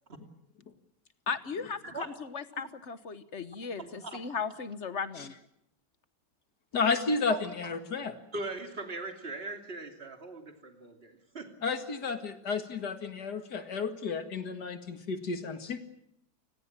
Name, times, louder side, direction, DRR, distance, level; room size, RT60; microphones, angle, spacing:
voice 1, 1.3-5.3, left 5 dB, 45° left, 13 dB, 1.3 m, -37 dB
voice 2, 1.8-2.2 2.5-2.7 3.8-4.2 7.3-7.8 8.3-11.5, right 3 dB, 35° right, 5 dB, 3.1 m, -40 dB
voice 3, 6.7-8.2 11.6-15.8, left 4 dB, 65° left, 8 dB, 2.5 m, -32 dB
29.0 x 20.5 x 7.4 m, 0.72 s
omnidirectional pair, 1.9 m